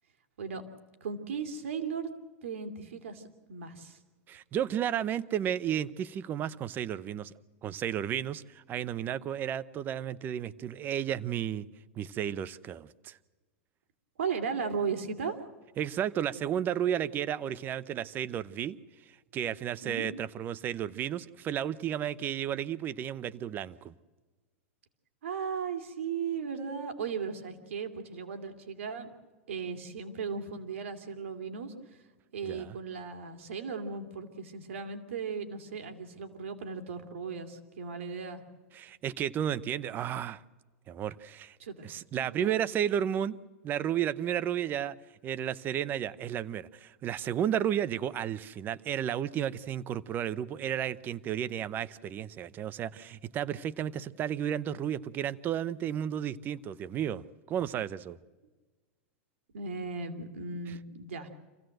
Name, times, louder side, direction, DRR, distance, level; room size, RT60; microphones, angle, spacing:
voice 1, 1.0-2.1 2.4-4.0 14.2-15.4 19.8-20.1 25.2-29.1 29.5-32.0 32.3-38.4 41.6-41.9 42.1-42.6 59.5-61.3, right 5 dB, 85° right, 6 dB, 2.7 m, -36 dB
voice 2, 4.3-7.3 7.6-11.7 12.0-13.2 15.8-18.8 19.3-23.9 32.4-32.8 38.7-40.4 40.9-41.6 41.8-43.4 43.6-45.0 45.2-58.2 60.7-60.8, right 10 dB, 30° right, 17 dB, 0.7 m, -33 dB
26.5 x 16.0 x 7.8 m, 1.3 s
supercardioid pair, 135°, 7 cm